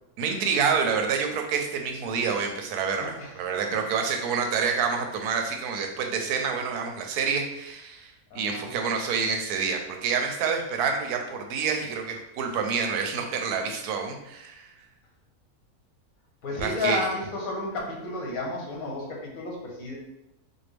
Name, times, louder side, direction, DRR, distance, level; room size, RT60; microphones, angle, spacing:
voice 1, 0.2-14.7 16.6-17.0, right 6 dB, 80° right, 3 dB, 1.1 m, -28 dB
voice 2, 3.0-3.3 3.7-3.8 8.3-8.7 16.4-19.9, left 2 dB, 70° left, -2 dB, 1.4 m, -32 dB
4.4 x 2.2 x 3.3 m, 0.87 s
omnidirectional pair, 1.6 m